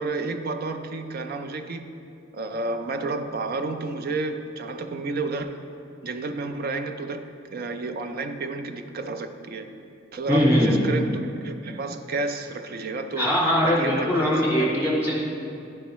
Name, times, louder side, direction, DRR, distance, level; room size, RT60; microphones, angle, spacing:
voice 1, 0.0-1.9 2.3-5.6 6.0-7.2 7.5-9.7 10.1-13.3 13.6-14.9, right 3 dB, 50° right, 7 dB, 0.4 m, -31 dB
voice 2, 10.3-10.8 13.2-15.2, equal, 10° right, -6 dB, 1.7 m, -21 dB
11.0 x 4.5 x 3.1 m, 2.6 s
head